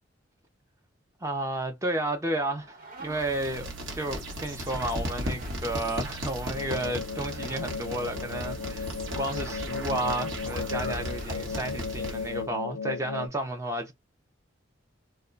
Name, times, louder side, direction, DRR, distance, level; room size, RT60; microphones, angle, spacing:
voice 1, 1.2-13.9, right 1 dB, 15° right, 0.4 m, -32 dB
sound 1, 2.6-3.4 5.1-5.7 7.2-7.7 9.2-9.6 10.9-11.5, right 3 dB, 45° right, 1.0 m, -47 dB
sound 2, 3.1-12.5, equal, 65° right, 1.0 m, -36 dB
sound 3, 6.5-13.3, left 5 dB, 85° left, 0.4 m, -36 dB
2.2 x 2.1 x 3.7 m
head